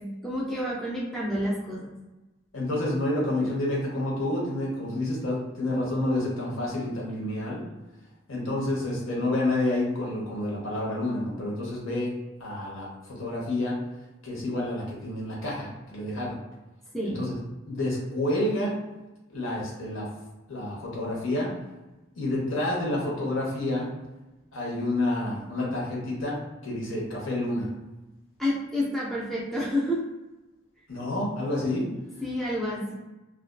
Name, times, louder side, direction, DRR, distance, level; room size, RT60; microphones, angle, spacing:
voice 1, 0.0-1.9 16.9-17.2 28.4-30.0 32.2-32.9, left 1 dB, ahead, -6 dB, 0.4 m, -29 dB
voice 2, 2.5-7.6 8.3-12.1 12.4-13.8 14.2-16.4 17.0-17.3 17.6-18.8 19.3-20.1 20.5-21.5 22.2-23.9 24.5-27.7 30.9-31.9, left 1 dB, 70° left, -4 dB, 0.9 m, -29 dB
2.6 x 2.3 x 2.2 m, 1.1 s
head